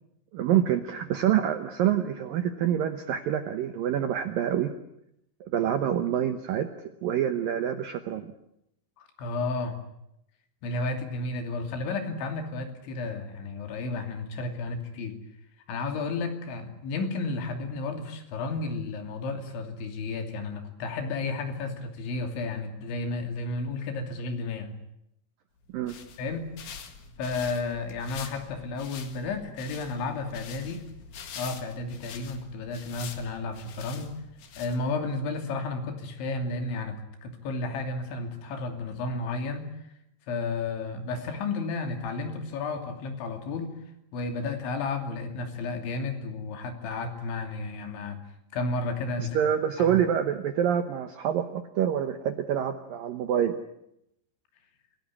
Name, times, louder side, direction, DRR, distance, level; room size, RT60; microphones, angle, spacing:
voice 1, 0.3-4.7 5.4-6.7 7.0-8.3 25.7-25.9 49.2-53.6, right 10 dB, 80° right, 8 dB, 2.0 m, -26 dB
voice 2, 9.0-9.8 10.6-15.2 15.7-24.7 26.2-26.5 27.2-30.8 31.4-34.1 34.6-39.7 40.3-43.7 44.1-48.2 48.5-49.4 49.8-50.0, left 3 dB, 70° left, 5 dB, 5.1 m, -32 dB
sound 1, 25.6-35.1, left 6 dB, 55° left, 2.5 m, -45 dB
27.0 x 17.5 x 9.7 m, 0.81 s
omnidirectional pair, 5.6 m